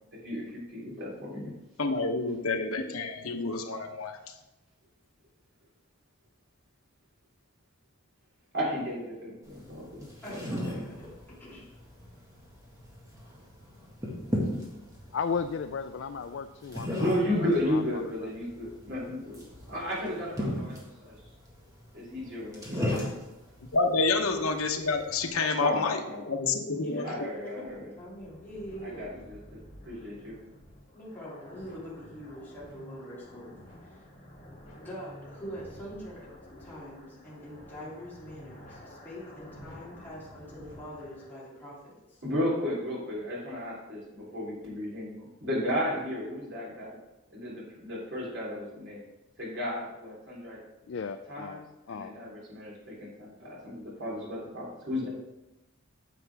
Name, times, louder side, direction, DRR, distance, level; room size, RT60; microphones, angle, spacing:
voice 1, 0.1-1.5 8.5-10.0 17.0-19.4 19.7-21.1 21.9-23.1 25.5-26.2 27.0-27.8 28.8-30.3 42.2-47.0 47.3-49.1 49.4-50.6 51.3-55.1, left 1 dB, 55° right, -5 dB, 3.4 m, -34 dB
voice 2, 1.8-4.3 23.7-27.1, left 3 dB, 90° left, 5 dB, 0.9 m, -28 dB
sound 1, 9.4-25.3, equal, 15° right, 1.8 m, -37 dB
voice 3, 10.2-11.1 11.4-11.7 22.7-22.9 24.3-24.4 26.7-29.2 30.9-34.1 34.7-36.3 36.6-42.2, equal, 10° left, -8 dB, 2.8 m, -43 dB
voice 4, 15.1-17.1 17.4-18.3 50.9-52.2, left 5 dB, 60° left, 9 dB, 0.3 m, -35 dB
sound 2, 27.5-41.3, left 1 dB, 35° left, 2.6 m, -50 dB
9.4 x 7.3 x 3.5 m, 0.99 s
head